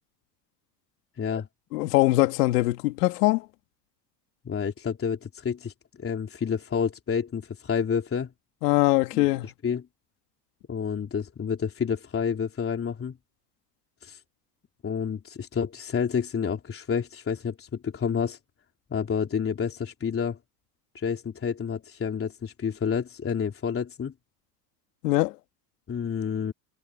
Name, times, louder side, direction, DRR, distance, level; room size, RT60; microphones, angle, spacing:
voice 1, 1.2-1.5 4.4-8.3 9.1-9.9 10.7-13.2 14.0-14.2 14.8-18.4 18.9-20.4 20.9-24.1 25.9-26.5, left 6 dB, 30° left, 3.5 m, -29 dB
voice 2, 1.7-3.5 8.6-9.5 25.0-25.4, left 18 dB, 80° left, 2.3 m, -22 dB
supercardioid pair, 95°, 47 cm